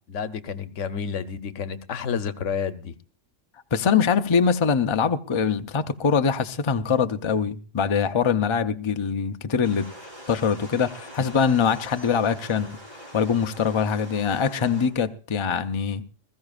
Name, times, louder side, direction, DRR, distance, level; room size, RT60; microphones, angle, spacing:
voice 1, 0.1-2.9, left 6 dB, 75° left, 1.2 m, -30 dB
voice 2, 3.7-9.9 10.3-12.8 13.1-16.0, left 6 dB, 35° left, 0.5 m, -23 dB
sound 1, 9.6-14.9, equal, 40° right, 3.4 m, -43 dB
21.0 x 14.5 x 2.4 m
omnidirectional pair, 1.3 m